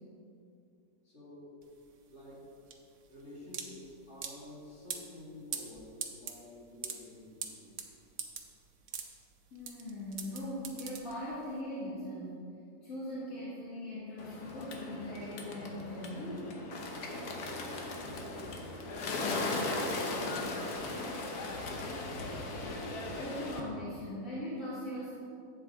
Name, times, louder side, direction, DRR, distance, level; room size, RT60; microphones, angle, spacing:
voice 1, 1.0-1.6 2.0-2.5 3.1-7.7 17.8-19.3, left 1 dB, 45° left, -6 dB, 2.7 m, -51 dB
sound 1, 1.6-11.6, right 7 dB, 70° right, 1.2 m, -43 dB
voice 2, 9.5-12.4 12.8-16.5 23.1-25.1, left 1 dB, 65° left, -9 dB, 2.1 m, -40 dB
Bird, 14.2-23.6, left 2 dB, 85° left, 1.5 m, -37 dB
12.0 x 8.0 x 3.5 m, 2.5 s
omnidirectional pair, 1.6 m